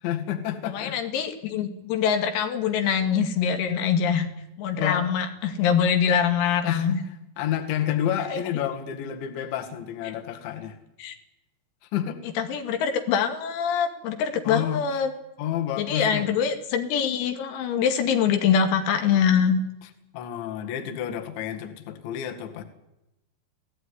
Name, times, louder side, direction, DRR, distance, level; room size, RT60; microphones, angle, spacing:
voice 1, 0.0-1.0 4.8-5.1 6.6-7.0 7.4-10.8 11.9-12.2 14.4-14.8 15.4-16.3 20.1-22.6, left 10 dB, 65° left, 6 dB, 4.0 m, -29 dB
voice 2, 0.7-4.3 4.6-7.0 8.3-8.4 11.0-11.1 12.4-15.1 15.8-19.6, left 7 dB, 90° left, 6 dB, 5.0 m, -24 dB
27.5 x 17.5 x 9.9 m, 0.92 s
omnidirectional pair, 5.9 m